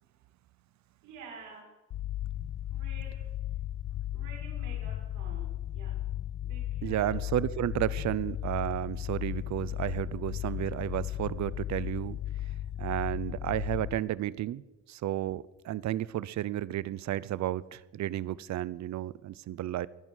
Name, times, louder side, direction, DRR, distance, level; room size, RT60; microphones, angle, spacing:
voice 1, 1.0-1.8 2.7-3.3 4.1-6.1 6.4-7.2, right 4 dB, 90° right, 6.2 m, -49 dB
sound 1, 1.9-14.0, left 12 dB, 60° left, 0.9 m, -35 dB
voice 2, 6.8-12.2 12.8-14.6 14.9-19.9, right 13 dB, 65° right, 0.7 m, -32 dB
23.5 x 9.1 x 6.3 m
cardioid pair, 90°, 30 cm